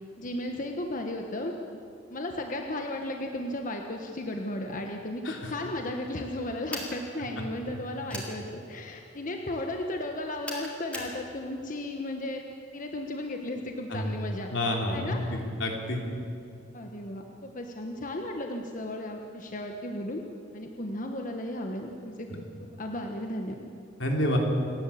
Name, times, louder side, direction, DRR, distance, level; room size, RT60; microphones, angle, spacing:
voice 1, 0.2-1.5 2.1-15.3 16.7-20.2 20.5-23.7, left 1 dB, 45° left, 3 dB, 1.3 m, -35 dB
sound 1, 6.7-7.0 8.1-8.3 10.4-11.1, equal, 5° left, 3.8 m, -37 dB
voice 2, 14.5-16.0 24.0-24.4, left 1 dB, 85° left, 1 dB, 3.5 m, -28 dB
29.0 x 11.5 x 8.5 m, 2.5 s
head